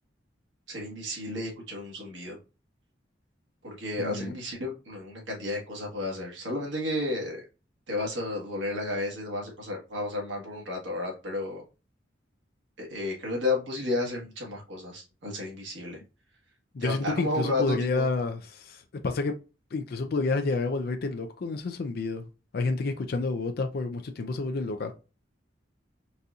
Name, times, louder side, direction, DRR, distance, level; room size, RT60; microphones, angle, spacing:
voice 1, 0.7-2.4 3.6-7.4 7.9-11.6 12.8-16.0 16.8-18.1, left 2 dB, 80° right, 1.6 m, -32 dB
voice 2, 4.0-4.4 16.7-19.4 19.7-22.3 22.5-24.9, left 3 dB, 55° left, 0.4 m, -29 dB
4.1 x 2.6 x 2.3 m
head